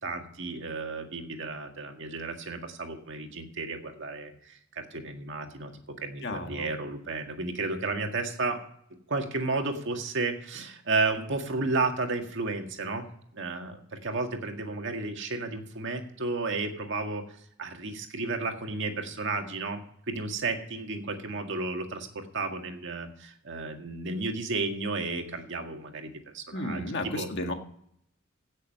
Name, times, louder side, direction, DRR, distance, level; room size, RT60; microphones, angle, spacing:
voice 1, 0.0-8.6 9.1-13.0 13.3-17.2 17.6-19.8 20.1-27.3, right 3 dB, 60° right, 4 dB, 1.9 m, -32 dB
voice 2, 6.2-6.7 26.5-27.5, left 1 dB, 55° left, 4 dB, 1.8 m, -33 dB
16.5 x 6.6 x 6.5 m, 0.71 s
head